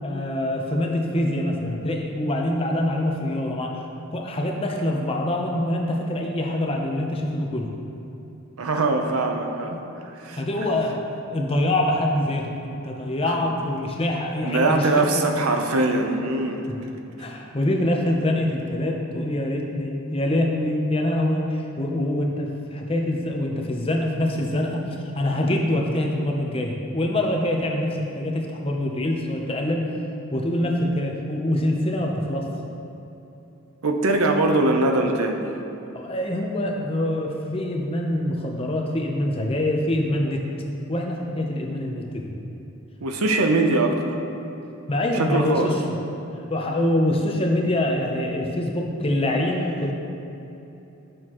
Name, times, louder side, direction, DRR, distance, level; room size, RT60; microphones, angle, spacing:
voice 1, 0.0-3.9 4.1-7.7 10.4-11.0 11.3-15.3 17.2-24.8 25.1-29.9 30.3-32.5 35.9-40.4 40.9-42.3 44.9-45.9 46.5-49.9, left 1 dB, 25° left, 1 dB, 0.7 m, -25 dB
voice 2, 8.6-10.4 13.2-13.3 14.4-16.7 33.8-35.4 43.0-44.1 45.1-45.7, right 2 dB, 85° right, 4 dB, 0.7 m, -22 dB
10.5 x 6.3 x 3.0 m, 3.0 s
head